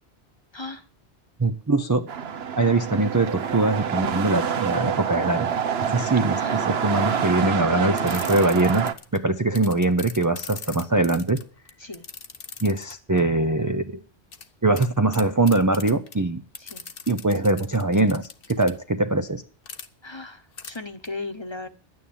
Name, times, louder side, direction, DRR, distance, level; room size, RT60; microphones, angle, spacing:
voice 1, 1.4-2.1 2.6-5.5 5.9-8.9 9.1-11.4 12.6-14.0 14.6-16.4 17.1-19.4, right 2 dB, 20° right, 8 dB, 0.6 m, -22 dB
sound 1, 2.1-8.9, right 7 dB, 70° right, 1.1 m, -27 dB
sound 2, 7.9-9.2 9.5-13.2 14.3-14.5 14.8-14.9 15.1-16.2 16.5-18.7 19.7-19.9 20.6-20.8 21.0-21.1, left 5 dB, 60° left, 1.2 m, -39 dB
voice 2, 20.0-21.7, left 3 dB, 25° left, 8 dB, 1.2 m, -36 dB
11.0 x 9.4 x 8.7 m, 0.41 s
omnidirectional pair, 1.1 m